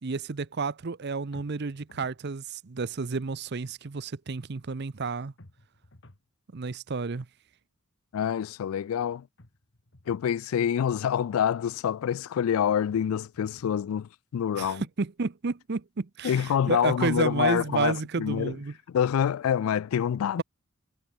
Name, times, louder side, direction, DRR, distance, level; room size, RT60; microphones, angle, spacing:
voice 1, 0.0-5.3 6.5-7.3 14.5-18.7, right 4 dB, 50° right, 0.6 m, -31 dB
sound 1, 1.3-2.2 5.4-6.3 9.4-10.3 12.9-13.8, left 1 dB, 60° left, 2.1 m, -54 dB
voice 2, 8.1-9.3 10.1-14.8 16.2-18.6 18.9-20.4, left 8 dB, 75° left, 0.3 m, -26 dB
head